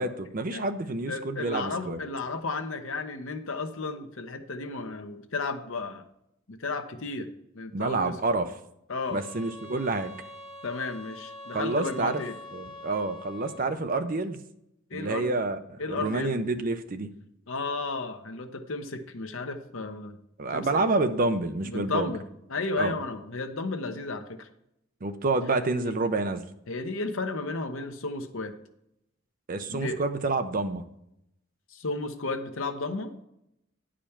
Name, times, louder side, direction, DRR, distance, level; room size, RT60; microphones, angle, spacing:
voice 1, 0.0-2.0 7.7-8.5 9.1-10.1 11.5-12.2 12.5-14.4 14.9-17.1 20.4-22.1 22.8-23.0 25.0-26.4 29.5-30.8, right 3 dB, 40° right, 9 dB, 0.6 m, -28 dB
voice 2, 1.1-6.0 6.5-7.3 7.5-8.1 8.9-9.2 10.6-12.4 14.9-15.3 15.8-16.4 17.5-20.2 20.5-20.9 21.6-24.5 25.8-25.9 26.7-28.5 29.7-30.0 31.7-33.1, left 3 dB, 70° left, 7 dB, 0.8 m, -33 dB
sound 1, 9.0-13.8, left 2 dB, 25° left, 1.4 m, -44 dB
9.9 x 5.0 x 5.8 m, 0.79 s
head